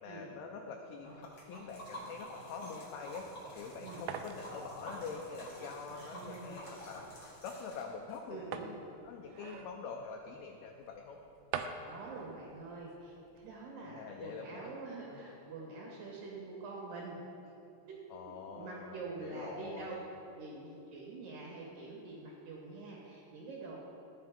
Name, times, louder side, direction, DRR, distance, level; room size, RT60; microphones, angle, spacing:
voice 1, 0.0-11.2 13.8-14.8 15.1-15.3 18.1-20.0, left 5 dB, 80° left, 1 dB, 2.4 m, -45 dB
Liquid, 1.0-8.2, equal, 50° left, 1.3 m, -49 dB
sound 1, 3.2-13.6, right 7 dB, 85° right, 2.1 m, -47 dB
voice 2, 5.9-6.6 8.3-8.8 11.8-17.2 17.4-17.5 17.9-19.9 20.3-23.8, right 3 dB, 65° right, -3 dB, 2.7 m, -46 dB
11.5 x 8.9 x 3.6 m, 2.7 s
omnidirectional pair, 4.7 m